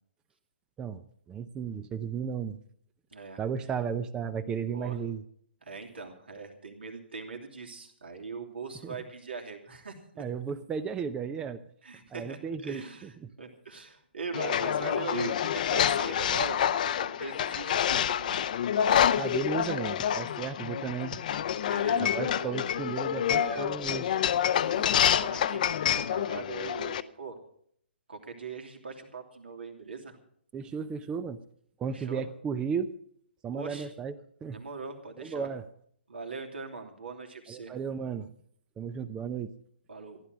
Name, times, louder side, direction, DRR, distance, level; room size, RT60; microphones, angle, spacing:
voice 1, 1.3-2.6 3.4-5.2 8.8-9.0 10.2-11.6 12.1-12.8 13.2-13.3 19.1-21.2 22.0-24.1 30.5-31.4 31.8-32.9 33.4-34.1 34.4-34.6 35.2-35.7 37.5-38.3 38.8-39.5, right 6 dB, 15° right, 11 dB, 0.6 m, -34 dB
voice 2, 5.6-10.2 11.8-18.4 21.6-22.7 23.3-23.7 24.6-27.4 28.1-30.2 31.9-32.2 33.5-33.9 34.5-35.5 36.1-37.7 39.9-40.2, right 4 dB, 70° right, 3 dB, 3.0 m, -41 dB
sound 1, 14.3-27.0, left 9 dB, 45° left, 0.7 m, -27 dB
15.0 x 11.5 x 6.2 m, 0.67 s
figure-of-eight pair, 130°, 6 cm